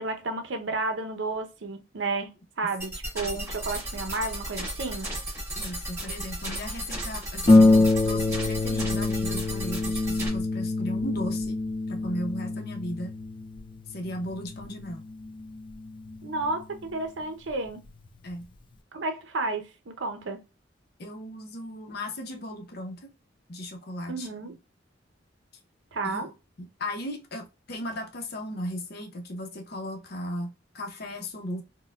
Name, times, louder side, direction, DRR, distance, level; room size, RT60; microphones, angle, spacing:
voice 1, 0.0-5.1 16.2-17.8 18.9-20.4 24.1-24.6 25.9-26.3, right 3 dB, 75° right, 0.7 m, -32 dB
sound 1, 2.8-10.3, right 1 dB, 15° right, 1.6 m, -35 dB
voice 2, 5.5-11.6 11.9-13.1 13.9-15.0 18.2-18.5 21.0-23.1 23.5-24.3 26.0-26.3 26.6-31.6, left 1 dB, 55° left, 0.7 m, -36 dB
Harp, 7.5-16.6 17.5-17.6 18.1-18.2, left 2 dB, 25° left, 0.4 m, -25 dB
4.3 x 2.2 x 2.2 m
head